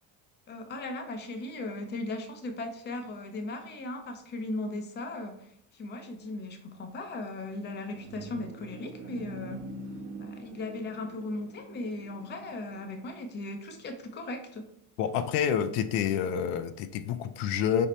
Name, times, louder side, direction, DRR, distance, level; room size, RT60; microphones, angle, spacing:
voice 1, 0.5-9.7 10.2-14.6, left 2 dB, 25° left, 6 dB, 0.5 m, -37 dB
sound 1, 7.5-13.1, right 2 dB, 85° right, 0.9 m, -44 dB
voice 2, 15.0-17.9, left 8 dB, 80° left, 10 dB, 0.5 m, -28 dB
5.2 x 2.1 x 4.1 m, 0.71 s
cardioid pair, 145°, 41 cm